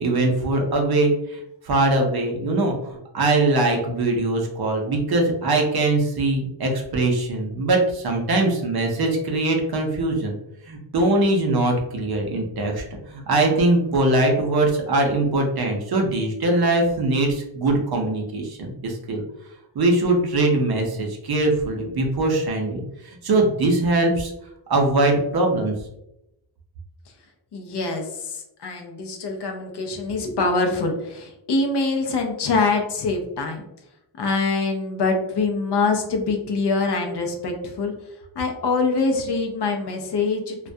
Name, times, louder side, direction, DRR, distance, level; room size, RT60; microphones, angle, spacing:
voice 1, 0.0-10.3 10.7-19.2 19.7-24.3 24.7-25.7, right 2 dB, 55° right, 1 dB, 0.5 m, -22 dB
voice 2, 27.5-33.7 34.2-37.9 38.4-40.7, left 3 dB, 60° left, 3 dB, 0.5 m, -24 dB
2.3 x 2.1 x 2.5 m, 0.83 s
wide cardioid pair, 165°, 47 cm